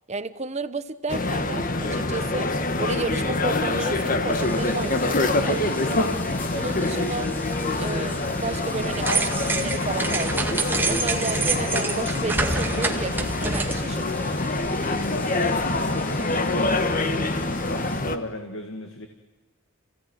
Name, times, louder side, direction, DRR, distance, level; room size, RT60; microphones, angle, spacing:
voice 1, 0.1-2.5 2.8-6.1 6.5-7.3 7.8-14.3, right 3 dB, 35° right, 12 dB, 1.0 m, -32 dB
sound 1, 1.1-18.2, left 2 dB, 40° left, 1.4 m, -25 dB
sound 2, 4.3-18.0, equal, 10° left, 1.8 m, -41 dB
sound 3, 8.9-14.0, right 3 dB, 10° right, 1.8 m, -27 dB
voice 2, 15.7-17.3 17.7-19.1, left 2 dB, 70° left, 5 dB, 2.1 m, -35 dB
29.0 x 16.5 x 9.4 m, 1.2 s
head